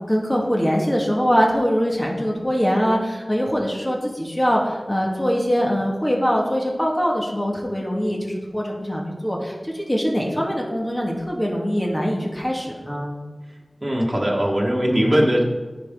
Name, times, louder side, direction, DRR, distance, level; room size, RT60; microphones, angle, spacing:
voice 1, 0.1-13.2, equal, 20° left, -1 dB, 1.9 m, -23 dB
voice 2, 13.8-15.4, equal, 30° right, -3 dB, 1.7 m, -20 dB
14.5 x 5.2 x 3.8 m, 1.3 s
wide cardioid pair, 45°, 0 cm